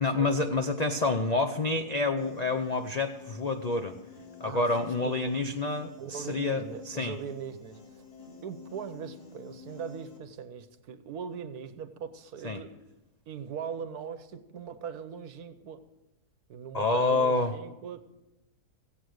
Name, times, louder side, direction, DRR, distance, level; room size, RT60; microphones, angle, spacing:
voice 1, 0.0-4.0 4.4-7.1 12.4-12.6 16.7-17.5, left 3 dB, 55° left, 6 dB, 0.4 m, -28 dB
Piano, 2.2-10.2, left 6 dB, 75° left, 2.7 m, -49 dB
voice 2, 5.0-5.4 6.0-8.1 8.4-12.7 13.3-15.8 16.5-18.0, right 7 dB, 75° right, 11 dB, 1.3 m, -40 dB
16.0 x 8.1 x 6.4 m, 0.98 s
omnidirectional pair, 1.7 m